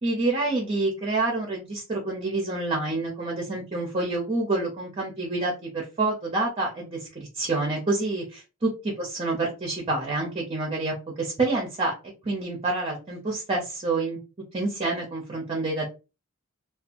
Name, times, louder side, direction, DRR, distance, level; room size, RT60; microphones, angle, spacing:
voice 1, 0.0-11.9 12.2-14.2 14.5-15.9, right 2 dB, 25° right, 0 dB, 0.6 m, -28 dB
2.6 x 2.3 x 2.5 m, 0.29 s
head